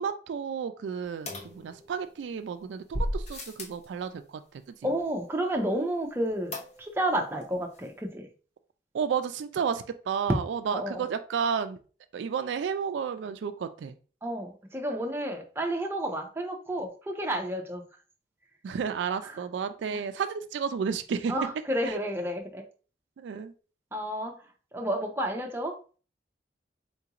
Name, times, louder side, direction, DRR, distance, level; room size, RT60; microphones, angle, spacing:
voice 1, 0.0-4.7 8.9-11.8 12.1-14.0 18.6-21.3 21.9-22.0 23.2-23.5, right 6 dB, 80° right, 9 dB, 0.3 m, -32 dB
sound 1, 1.3-2.2 2.9-3.9 6.5-7.1 7.4-7.5 7.7-7.8, left 1 dB, 40° left, 0.7 m, -35 dB
voice 2, 4.8-8.3 10.7-11.0 14.2-17.8 19.2-19.3 19.9-20.0 21.3-22.6 23.9-25.8, right 1 dB, 15° right, 2 dB, 0.5 m, -31 dB
3.8 x 2.4 x 2.8 m, 0.38 s
head